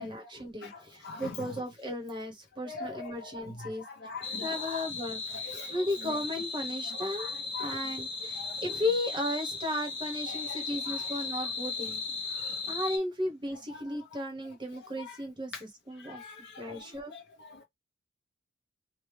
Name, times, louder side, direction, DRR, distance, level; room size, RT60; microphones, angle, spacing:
voice 1, 0.0-3.8 4.4-7.3 7.6-16.2 16.6-17.1, left 1 dB, 20° right, 1.0 m, -35 dB
voice 2, 0.6-1.5 2.6-4.9 5.4-5.7 6.1-6.2 6.9-7.7 8.4-8.6 10.3-11.1 12.4-12.7 14.1-14.2 15.0-15.2 15.5-15.6 16.0-17.6, left 4 dB, 55° left, 0.8 m, -43 dB
sound 1, 4.2-13.0, left 4 dB, 25° left, 1.3 m, -36 dB
3.3 x 2.2 x 3.2 m
head